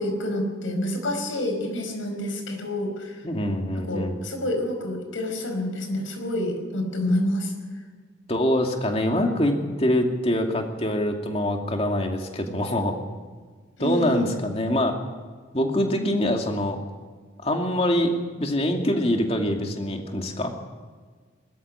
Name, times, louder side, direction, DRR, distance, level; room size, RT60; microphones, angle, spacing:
voice 1, 0.0-3.2 3.7-7.5 13.8-14.3, left 1 dB, 85° left, 4 dB, 5.4 m, -28 dB
voice 2, 3.2-4.2 8.3-12.9 13.8-15.0 15.5-16.8 17.4-18.1 18.4-20.5, left 1 dB, 30° left, 3 dB, 2.5 m, -24 dB
21.0 x 13.5 x 9.8 m, 1.5 s
head